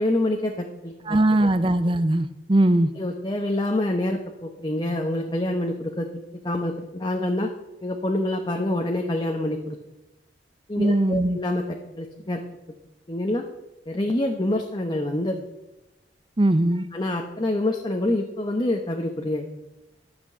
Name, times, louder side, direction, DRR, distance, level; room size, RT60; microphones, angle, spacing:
voice 1, 0.0-1.5 2.9-6.1 6.4-7.5 7.8-9.8 10.7-12.4 13.1-13.4 13.9-15.4 16.9-19.5, left 1 dB, 25° left, 2 dB, 1.0 m, -26 dB
voice 2, 1.1-2.9 10.8-11.4 16.4-16.8, right 1 dB, 30° right, 12 dB, 0.7 m, -20 dB
12.0 x 6.2 x 8.6 m, 0.98 s
head